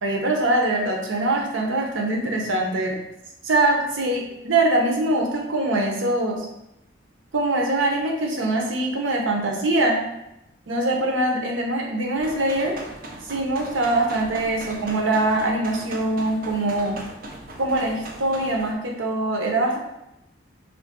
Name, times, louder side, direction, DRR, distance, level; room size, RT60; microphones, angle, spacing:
voice 1, 0.0-3.0 3.4-6.5 7.3-10.0 10.7-12.7 13.3-17.0 17.6-19.8, right 2 dB, 85° right, 1 dB, 0.7 m, -23 dB
sound 1, 12.1-18.7, right 1 dB, 45° right, 0.5 m, -39 dB
3.2 x 2.5 x 3.6 m, 0.85 s
head